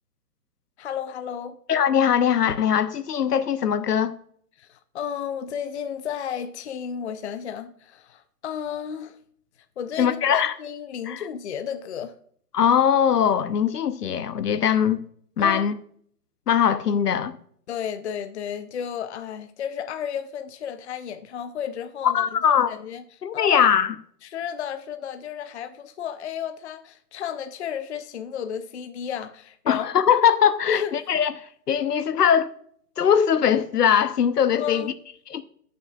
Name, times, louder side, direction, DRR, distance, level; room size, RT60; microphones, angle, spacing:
voice 1, 0.8-1.6 4.6-9.2 9.8-12.1 15.4-15.6 17.7-23.0 23.3-23.6 24.2-29.9 30.7-30.9 34.6-34.9, left 8 dB, 45° left, 0.6 m, -32 dB
voice 2, 1.7-4.1 10.0-10.5 11.1-11.2 12.5-15.0 15.4-15.7 16.5-17.4 22.0-22.7 23.2-23.9 29.7-31.3 31.7-32.5 33.0-34.8 35.3-35.4, left 8 dB, 75° left, 0.8 m, -21 dB
15.5 x 6.4 x 2.3 m
hypercardioid pair, 145°, 48 cm